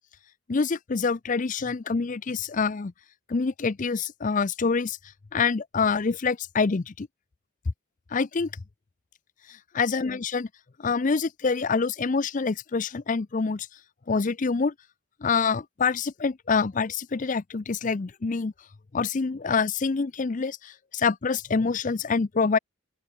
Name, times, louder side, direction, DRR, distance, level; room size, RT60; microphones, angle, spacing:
voice 1, 0.5-2.9 3.3-5.0 5.3-7.1 8.1-8.5 9.7-10.5 10.8-13.7 14.1-14.7 15.2-18.5 18.9-22.6, left 4 dB, 35° left, 0.5 m, -26 dB
open air
head